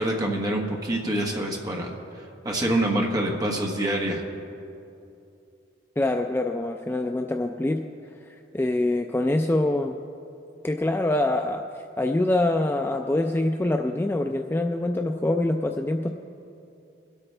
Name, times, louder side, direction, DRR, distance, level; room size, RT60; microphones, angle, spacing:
voice 1, 0.0-1.9 2.4-4.2, right 1 dB, 20° right, 0 dB, 1.3 m, -26 dB
voice 2, 6.0-7.8 8.3-10.0 10.6-11.7 12.0-16.1, left 2 dB, 10° left, 4 dB, 0.3 m, -25 dB
24.5 x 8.6 x 3.3 m, 2.7 s
head